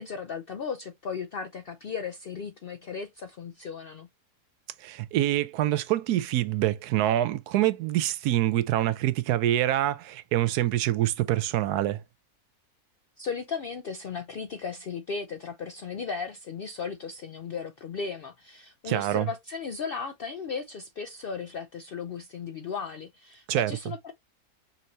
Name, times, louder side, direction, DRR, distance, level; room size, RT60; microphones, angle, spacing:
voice 1, 0.0-4.1 13.2-24.1, left 5 dB, 90° left, 0.5 m, -36 dB
voice 2, 4.8-12.0 18.9-19.3 23.5-23.7, right 13 dB, 80° right, 1.1 m, -25 dB
5.7 x 2.7 x 2.9 m
omnidirectional pair, 1.6 m